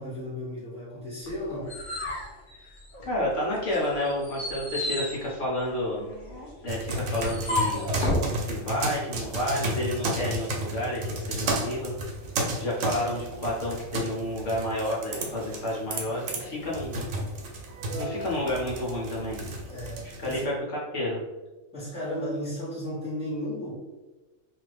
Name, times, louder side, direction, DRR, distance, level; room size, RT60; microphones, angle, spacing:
voice 1, 0.0-1.7 19.7-20.4 21.7-23.7, left 1 dB, 5° right, -10 dB, 1.0 m, -34 dB
sound 1, 1.3-3.2 3.7-8.3, left 1 dB, 45° left, 0.7 m, -33 dB
voice 2, 3.0-6.1 6.6-8.0 8.5-11.9 12.6-17.1 18.0-19.4 20.0-20.5 20.9-21.2, left 1 dB, 65° left, -5 dB, 1.1 m, -30 dB
sound 2, 6.7-20.4, right 1 dB, 75° right, 1.0 m, -33 dB
2.7 x 2.4 x 3.3 m, 1.2 s
omnidirectional pair, 1.4 m